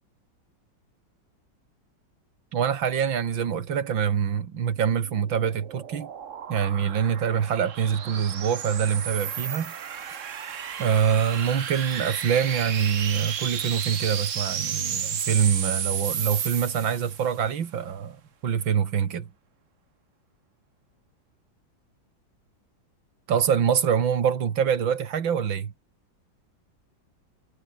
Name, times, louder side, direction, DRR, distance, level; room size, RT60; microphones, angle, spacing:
voice 1, 2.5-6.1 6.5-9.7 10.8-19.3 23.3-25.7, right 7 dB, 80° right, 2.5 m, -25 dB
sound 1, 4.8-17.4, right 8 dB, 45° right, 1.3 m, -33 dB
omnidirectional pair, 2.1 m